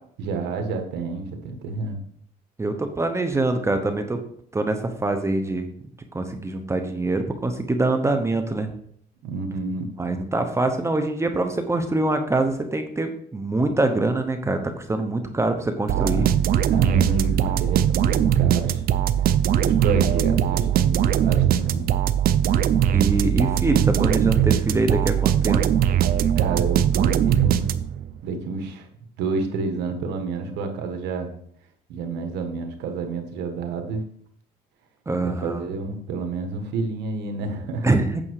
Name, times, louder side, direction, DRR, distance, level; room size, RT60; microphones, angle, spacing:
voice 1, 0.2-2.0 9.2-9.9 15.9-16.3 16.7-18.8 19.6-21.9 26.3-27.7 28.2-28.9 29.2-31.3 31.9-34.0 35.2-37.9, right 4 dB, 85° right, 5 dB, 1.6 m, -29 dB
voice 2, 2.6-4.2 4.5-5.7 6.1-8.7 10.0-16.3 22.9-25.6 35.1-35.7 37.8-38.2, right 2 dB, 15° right, 6 dB, 1.0 m, -24 dB
sound 1, 15.9-28.1, right 10 dB, 60° right, 0.6 m, -20 dB
8.9 x 6.3 x 4.8 m, 0.64 s
cardioid pair, 110°, 17 cm